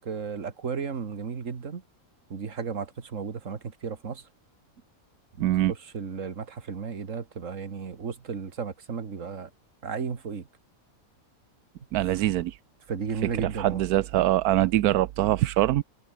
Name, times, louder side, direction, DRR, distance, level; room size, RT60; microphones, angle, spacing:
voice 1, 0.1-1.8 2.3-4.3 5.5-9.5 9.8-10.5 12.9-13.8, right 6 dB, 60° right, 2.1 m, -34 dB
voice 2, 5.4-5.7 11.9-12.6 13.4-15.8, right 14 dB, 85° right, 1.2 m, -23 dB
omnidirectional pair, 1.6 m